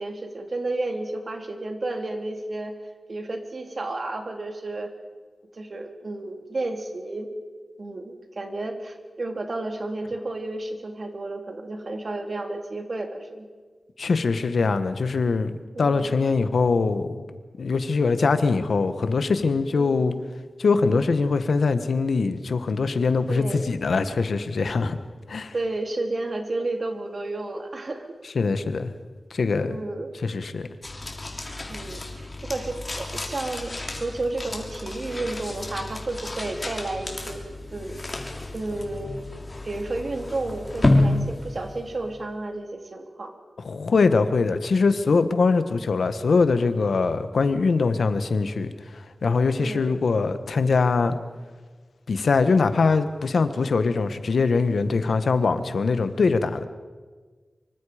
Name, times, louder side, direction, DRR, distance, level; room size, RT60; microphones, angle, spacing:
voice 1, 0.0-2.8 3.1-4.9 5.5-7.3 7.8-13.5 15.7-16.2 19.8-20.2 23.3-23.7 25.5-28.1 29.7-30.1 31.7-37.4 37.7-38.2 38.5-39.2 39.6-43.3 49.6-50.0, right 2 dB, 50° right, 4 dB, 2.7 m, -32 dB
voice 2, 14.0-17.3 17.6-20.1 20.6-25.0 25.3-25.5 28.3-28.9 29.3-29.8 30.2-30.7 43.6-51.1 52.1-56.7, left 4 dB, 80° left, 10 dB, 1.4 m, -22 dB
sound 1, 30.8-42.2, left 2 dB, 30° left, 3.3 m, -29 dB
25.0 x 24.5 x 5.1 m, 1.4 s
wide cardioid pair, 100°, 0 cm